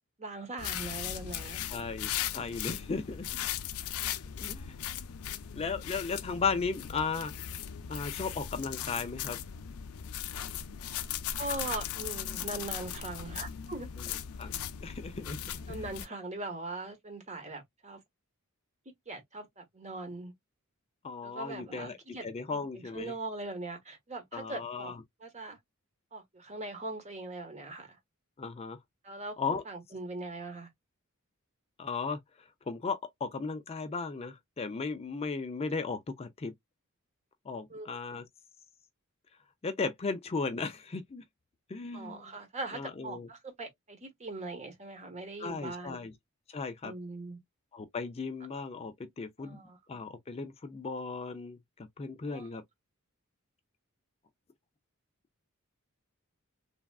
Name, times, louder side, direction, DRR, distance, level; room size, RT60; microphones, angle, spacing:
voice 1, 0.2-1.8 11.3-14.1 15.7-18.0 18.9-20.3 21.2-25.6 26.1-28.0 29.0-30.7 37.7-37.9 41.9-46.0 46.8-47.4 49.4-49.8 52.2-52.5, right 2 dB, 35° right, 1.0 m, -41 dB
sound 1, 0.6-16.1, left 10 dB, 85° left, 0.4 m, -38 dB
voice 2, 1.7-3.5 4.4-4.9 5.5-7.3 7.9-9.4 14.0-14.1 14.4-15.9 21.0-23.1 24.3-25.0 28.4-28.8 29.4-29.6 31.8-32.2 32.7-36.5 37.5-38.2 39.6-41.2 41.7-42.3 42.7-43.3 45.4-46.1 46.5-46.9 47.7-49.6 49.9-52.6, left 4 dB, 30° left, 0.4 m, -36 dB
3.3 x 2.3 x 2.3 m
head